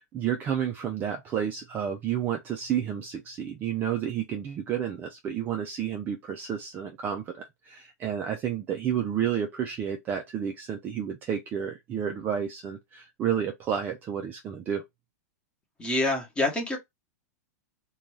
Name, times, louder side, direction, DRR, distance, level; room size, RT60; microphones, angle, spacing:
voice 1, 0.1-14.8, right 9 dB, 20° right, 0.4 m, -31 dB
voice 2, 15.8-16.8, left 2 dB, 10° left, 0.9 m, -26 dB
2.5 x 2.3 x 3.1 m
supercardioid pair, 150°, 9 cm